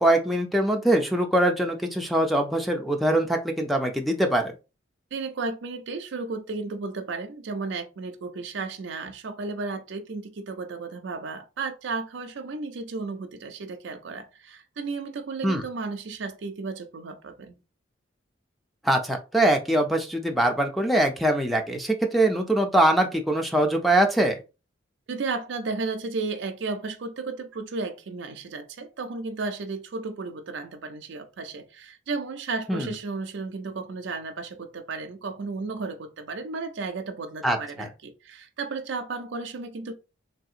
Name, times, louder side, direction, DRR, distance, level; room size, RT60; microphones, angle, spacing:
voice 1, 0.0-4.5 15.4-15.6 18.8-24.4 32.7-32.9 37.4-37.6, right 1 dB, ahead, 0.4 m, -23 dB
voice 2, 5.1-17.6 25.1-39.9, right 3 dB, 70° right, 0.4 m, -34 dB
3.4 x 2.7 x 2.4 m
head